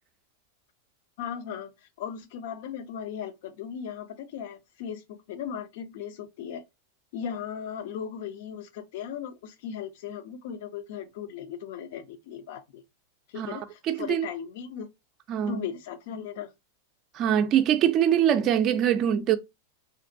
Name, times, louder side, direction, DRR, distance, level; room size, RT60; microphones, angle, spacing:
voice 1, 1.2-1.7 2.0-6.6 7.1-12.8 13.3-14.9 15.5-16.5, left 8 dB, 65° left, 0.5 m, -37 dB
voice 2, 13.4-14.3 15.3-15.6 17.1-19.4, right 10 dB, 40° right, 0.3 m, -23 dB
2.6 x 2.1 x 2.5 m
hypercardioid pair, 120°, 0 cm